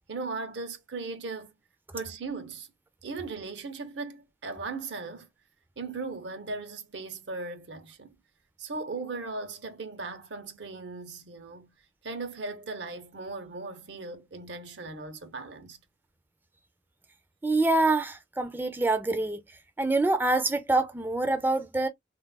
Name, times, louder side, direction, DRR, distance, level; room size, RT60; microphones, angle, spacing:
voice 1, 0.1-1.5 1.9-2.7 3.0-5.3 5.8-8.2 8.6-11.7 12.0-15.8, right 3 dB, 80° right, 0.7 m, -38 dB
voice 2, 17.4-19.4 19.8-21.9, right 2 dB, 10° right, 0.3 m, -25 dB
3.2 x 2.3 x 2.2 m
head